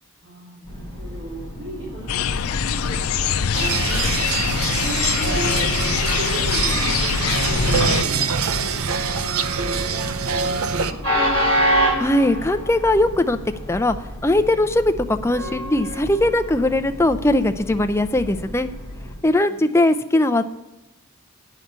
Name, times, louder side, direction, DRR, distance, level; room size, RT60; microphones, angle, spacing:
voice 1, 0.2-11.0 19.4-19.6, right 1 dB, 45° right, -6 dB, 3.1 m, -36 dB
Train, 0.6-19.2, equal, 65° right, 4.3 m, -29 dB
sound 1, 2.1-8.0, left 7 dB, 90° left, 0.5 m, -23 dB
sound 2, 3.5-10.9, right 6 dB, 85° right, 0.6 m, -24 dB
voice 2, 12.0-13.4 13.7-14.0 14.2-18.7 19.2-20.4, left 1 dB, 10° left, 8 dB, 0.4 m, -19 dB
9.3 x 6.0 x 8.1 m, 1.0 s
head